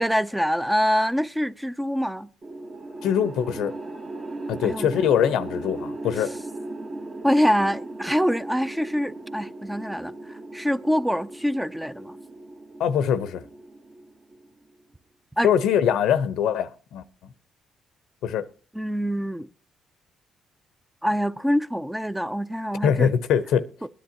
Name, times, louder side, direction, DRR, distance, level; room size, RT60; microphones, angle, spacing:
voice 1, 0.0-2.3 4.6-5.0 6.2-6.3 7.2-12.2 15.4-15.5 18.7-19.5 21.0-23.1 23.8-23.9, equal, 5° right, 0.5 m, -25 dB
sound 1, 2.4-14.7, right 2 dB, 35° right, 1.3 m, -37 dB
voice 2, 3.0-3.7 4.5-6.3 12.8-13.4 15.4-17.0 18.2-18.4 22.8-23.6, left 8 dB, 85° left, 0.7 m, -22 dB
20.5 x 10.0 x 2.9 m
cardioid pair, 90°, 0 cm